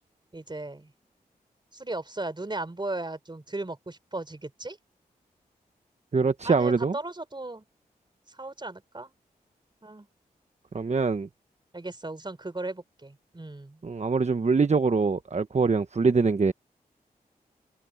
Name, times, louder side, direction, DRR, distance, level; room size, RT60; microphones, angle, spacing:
voice 1, 0.3-0.9 1.7-4.8 6.4-7.6 8.3-9.1 9.8-10.1 11.7-13.8, right 2 dB, 30° right, 4.1 m, -36 dB
voice 2, 6.1-6.9 10.7-11.3 13.8-16.5, right 4 dB, 45° right, 1.1 m, -23 dB
cardioid pair, 45°, 16 cm